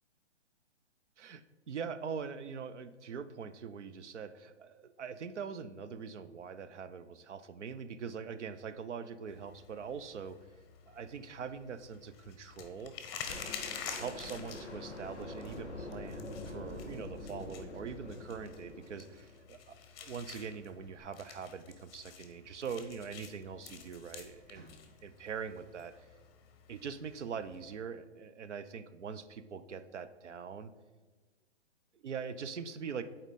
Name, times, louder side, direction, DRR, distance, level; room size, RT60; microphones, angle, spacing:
voice 1, 1.2-10.4 10.9-12.9 13.9-24.8 25.0-26.1 26.7-30.7 32.0-33.0, right 6 dB, 75° right, 12 dB, 0.7 m, -43 dB
sound 1, 9.3-27.8, left 7 dB, 20° left, 0.7 m, -49 dB
sound 2, 13.3-19.5 21.0-21.1, left 2 dB, ahead, 0.3 m, -45 dB
sound 3, 20.7-22.1 23.5-23.8 24.2-25.4, right 1 dB, 60° right, 1.9 m, -62 dB
7.9 x 4.4 x 4.2 m, 1.3 s
hypercardioid pair, 135°, 35 cm